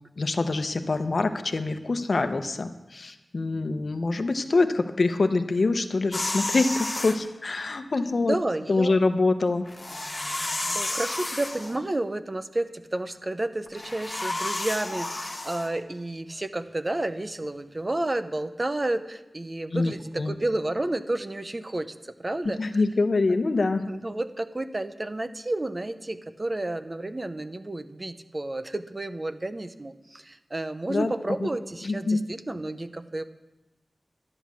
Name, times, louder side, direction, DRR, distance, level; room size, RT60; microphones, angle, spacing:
voice 1, 0.2-8.3 8.7-9.6 19.7-20.3 22.6-23.8 30.9-31.1 31.4-31.5 31.8-32.2, left 3 dB, 65° left, 8 dB, 0.9 m, -25 dB
sound 1, 6.1-7.2 9.6-11.8 13.7-15.7, left 2 dB, 35° left, 1.7 m, -31 dB
voice 2, 8.2-8.9 10.7-22.6 23.8-33.2, right 2 dB, 35° right, 10 dB, 0.7 m, -31 dB
12.0 x 10.5 x 6.3 m, 1.0 s
wide cardioid pair, 70°, 0 cm